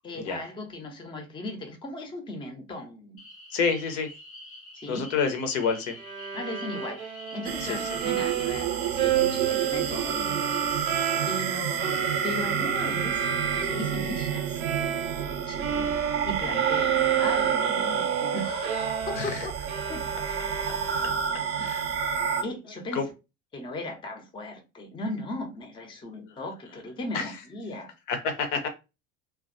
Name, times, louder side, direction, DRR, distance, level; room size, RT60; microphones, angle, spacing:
voice 1, 0.0-3.2 4.7-5.1 6.3-10.5 11.3-14.6 15.0-15.9 16.2-16.9 17.2-19.5 19.9-20.5 21.6-21.7 22.4-23.0 23.5-27.9, left 1 dB, 10° left, 0.6 m, -37 dB
sound 1, 3.2-11.2, left 1 dB, 85° left, 1.1 m, -46 dB
voice 2, 3.5-4.1 4.9-5.9 7.6-8.0 11.1-11.3 16.4-16.6 19.1-19.5 21.6-21.9 22.9-23.0 26.3-26.4 27.1-27.3 28.1-28.7, left 5 dB, 60° left, 0.7 m, -29 dB
Bowed string instrument, 6.0-15.3 15.6-21.4, right 10 dB, 85° right, 0.6 m, -31 dB
sound 2, 7.4-22.4, right 7 dB, 40° right, 0.5 m, -29 dB
2.2 x 2.2 x 2.6 m
figure-of-eight pair, 70°, 41 cm